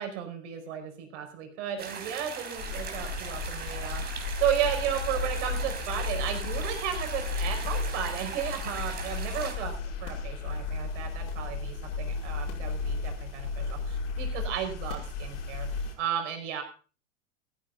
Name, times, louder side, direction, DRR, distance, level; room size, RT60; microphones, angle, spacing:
voice 1, 0.0-9.7 10.0-16.6, right 9 dB, 65° right, 4 dB, 5.2 m, -34 dB
sound 1, 1.8-9.6, right 6 dB, 25° right, 3.5 m, -40 dB
sound 2, 2.6-15.9, left 4 dB, 65° left, 5.2 m, -34 dB
14.5 x 13.5 x 3.9 m, 0.38 s
supercardioid pair, 130°, 38 cm